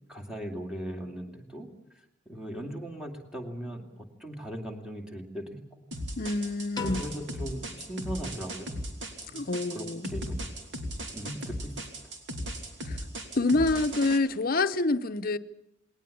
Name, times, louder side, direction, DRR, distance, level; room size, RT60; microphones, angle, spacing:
voice 1, 0.1-1.7 2.3-5.8 6.8-8.7 9.3-9.4 9.7-10.4 11.1-11.8, equal, 5° right, 2.5 m, -38 dB
sound 1, 5.9-14.2, equal, 65° right, 3.0 m, -37 dB
voice 2, 6.2-7.0 9.3-10.1 12.8-13.0 13.3-15.4, left 2 dB, 50° left, 0.7 m, -27 dB
Piano, 6.7-9.0, left 5 dB, 20° left, 1.3 m, -43 dB
20.0 x 19.0 x 8.6 m
head